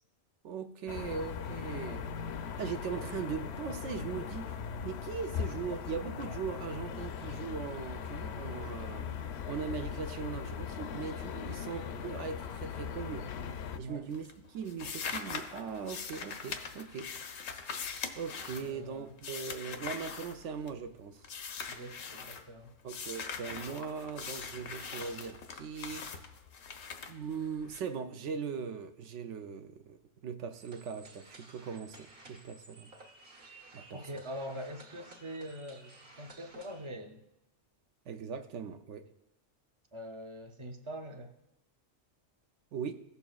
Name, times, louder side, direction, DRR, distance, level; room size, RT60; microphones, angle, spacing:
voice 1, 0.4-2.1 2.6-4.6 4.8-9.1 9.5-13.3 13.8-17.1 18.2-21.2 22.8-26.2 27.1-30.0 30.2-33.0 33.7-34.0 38.1-39.1 42.7-42.9, right 6 dB, 70° right, 0.9 m, -40 dB
sound 1, 0.9-13.8, left 7 dB, 65° left, 0.8 m, -39 dB
sound 2, 13.6-13.9 14.1-20.9 21.2-22.4 22.9-27.8, left 6 dB, 85° left, 1.1 m, -42 dB
voice 2, 18.5-19.1 21.7-22.7 25.9-26.0 33.9-37.2 39.9-41.3, equal, 30° right, 0.6 m, -44 dB
sound 3, 30.5-36.9, right 2 dB, 55° right, 1.5 m, -55 dB
15.5 x 6.9 x 2.3 m
omnidirectional pair, 1.3 m